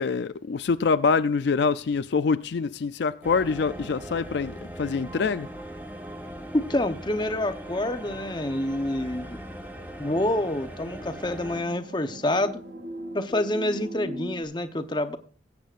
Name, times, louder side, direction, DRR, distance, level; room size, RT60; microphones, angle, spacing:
voice 1, 0.0-5.5, left 5 dB, 65° left, 0.4 m, -25 dB
sound 1, 3.2-11.6, equal, 10° right, 1.2 m, -40 dB
voice 2, 6.5-9.4 10.0-12.6 13.1-15.2, left 1 dB, 25° left, 0.8 m, -27 dB
sound 2, 9.6-14.4, equal, 75° right, 2.1 m, -41 dB
20.5 x 8.4 x 2.5 m
head